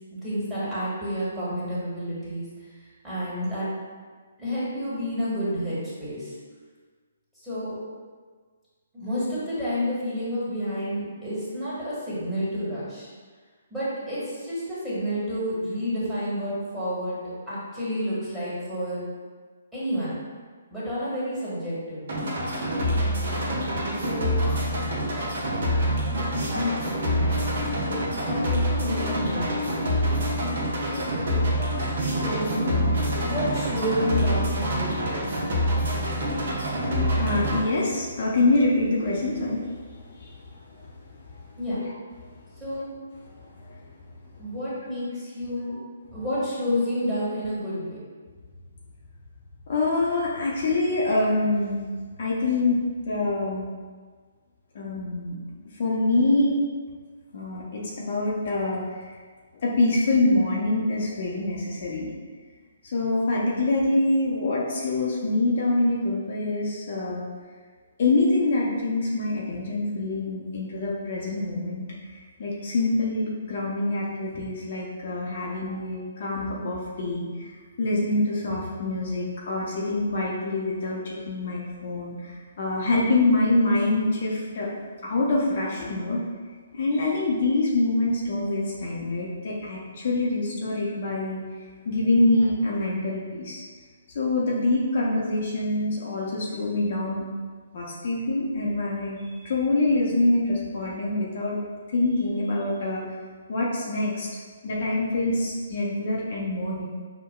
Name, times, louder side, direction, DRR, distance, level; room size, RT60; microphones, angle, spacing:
voice 1, 0.1-2.4 3.0-3.7 4.4-6.3 7.4-7.8 8.9-13.1 13.7-19.0 19.7-20.2 20.7-22.2 23.9-24.4 26.5-26.8 27.8-29.7 30.8-35.2 41.6-41.8 42.6-42.9 44.4-45.7 46.1-48.0, equal, 5° right, -13 dB, 1.5 m, -30 dB
sound 1, 22.1-37.6, equal, 60° right, 0.8 m, -26 dB
voice 2, 31.0-31.7 33.0-33.6 37.0-41.3 41.8-41.9 43.2-43.8 45.7-45.8 49.7-51.8 52.2-52.8 53.1-53.7 54.7-55.4 55.7-56.6 57.3-59.0 59.6-62.1 62.8-67.3 68.0-71.8 72.1-77.5 77.8-81.0 81.3-84.7 85.0-86.2 86.7-91.4 91.8-93.6 94.1-97.2 97.7-101.6 101.9-103.0 103.5-104.3 104.6-106.9, left 2 dB, 55° left, -5 dB, 0.7 m, -25 dB
5.7 x 2.2 x 2.2 m, 1.5 s
figure-of-eight pair, 135°, 0 cm